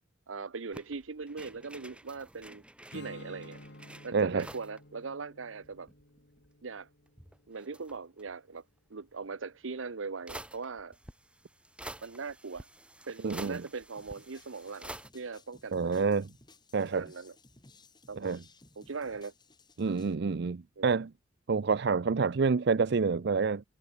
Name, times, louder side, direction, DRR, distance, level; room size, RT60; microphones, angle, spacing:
voice 1, 0.3-2.6 2.9-3.6 4.0-5.9 6.6-6.9 7.5-8.6 8.9-11.0 12.0-12.7 13.1-16.1 16.9-17.3 18.1-18.4 18.8-19.3 20.8-20.9, right 4 dB, 90° right, 0.8 m, -40 dB
sound 1, 0.7-4.8 5.1-5.2 5.4-6.5 7.1-8.4 9.5-9.6 10.3-15.1, right 1 dB, 5° right, 6.0 m, -49 dB
Strum, 2.9-8.2, left 1 dB, 60° left, 4.5 m, -52 dB
voice 2, 4.1-4.4 13.2-13.6 15.7-16.3 16.7-17.1 18.2-18.4 19.8-21.1 21.5-23.6, right 5 dB, 60° right, 0.5 m, -28 dB
sound 2, 14.0-20.1, left 2 dB, 20° left, 6.6 m, -59 dB
head